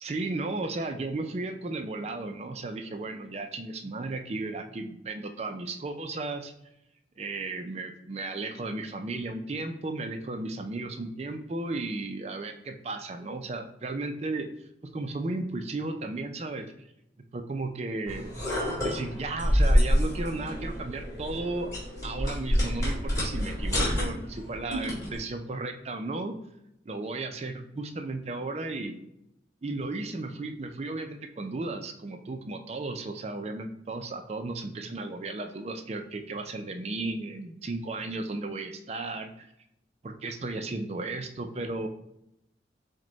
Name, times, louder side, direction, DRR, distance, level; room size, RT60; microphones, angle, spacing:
voice 1, 0.0-6.5 7.2-14.5 14.8-16.7 17.3-18.3 18.8-21.7 22.0-26.4 26.9-29.0 29.6-39.5 40.0-41.9, right 2 dB, 35° right, 6 dB, 0.4 m, -34 dB
sound 1, 18.1-25.2, equal, 20° left, 1.8 m, -27 dB
6.1 x 2.2 x 3.9 m, 0.81 s
head